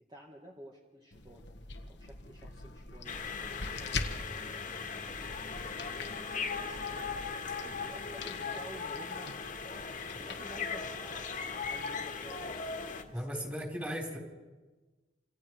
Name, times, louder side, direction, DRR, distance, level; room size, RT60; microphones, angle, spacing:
voice 1, 0.1-1.5 1.9-4.1 6.6-7.0 7.6-9.4 9.9-13.4, equal, 25° right, -2 dB, 2.2 m, -52 dB
sound 1, 1.1-13.3, left 3 dB, 85° left, 1.6 m, -45 dB
sound 2, 3.1-13.0, left 5 dB, 50° left, 2.0 m, -38 dB
voice 2, 13.1-14.2, equal, 10° right, 1 dB, 4.0 m, -36 dB
27.5 x 26.5 x 4.7 m, 1.3 s
head